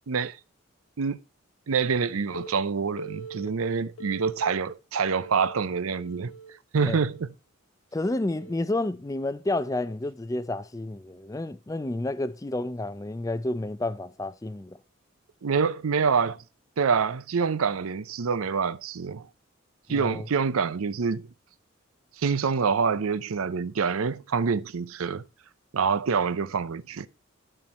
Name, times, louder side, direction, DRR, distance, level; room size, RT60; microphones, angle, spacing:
voice 1, 0.1-0.4 1.0-1.2 1.7-6.3 6.7-7.3 15.4-16.4 16.8-19.3 19.9-21.3 22.2-25.3 25.7-27.1, right 5 dB, 85° right, 0.6 m, -26 dB
Telephone, 2.3-2.5 3.0-3.5 4.0-4.5 5.0-5.5 6.0-6.5 7.0-7.3 8.3-8.5, right 4 dB, 85° left, 1.3 m, -42 dB
voice 2, 7.9-14.8 19.9-20.3, left 2 dB, 15° left, 0.4 m, -30 dB
12.0 x 4.5 x 4.2 m
head